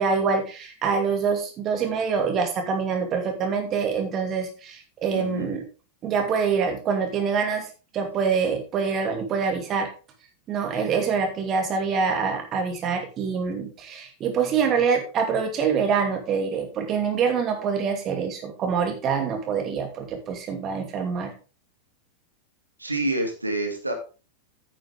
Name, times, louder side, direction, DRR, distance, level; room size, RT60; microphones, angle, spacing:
voice 1, 0.0-5.6 6.0-7.7 7.9-9.9 10.5-21.3, right 6 dB, 30° right, 4 dB, 2.5 m, -25 dB
voice 2, 5.1-5.5 22.8-23.9, right 2 dB, 85° right, 3 dB, 2.1 m, -27 dB
9.8 x 8.9 x 3.7 m, 0.34 s
figure-of-eight pair, 90°, 0 cm